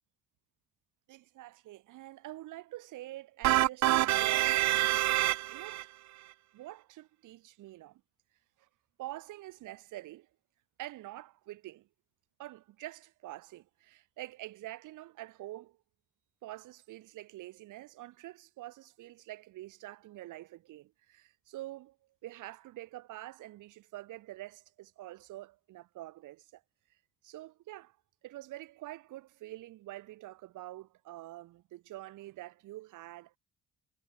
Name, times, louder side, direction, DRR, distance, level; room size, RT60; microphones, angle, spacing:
voice 1, 1.1-5.9 6.5-8.0 8.6-8.7 9.0-10.3 10.8-11.9 12.4-15.8 16.4-22.0 22.2-26.6 26.9-27.0 27.2-28.0 28.2-33.4, right 16 dB, 90° right, 4.0 m, -46 dB
sound 1, 3.4-5.8, right 16 dB, 65° right, 0.5 m, -26 dB
cardioid pair, 90°, 30 cm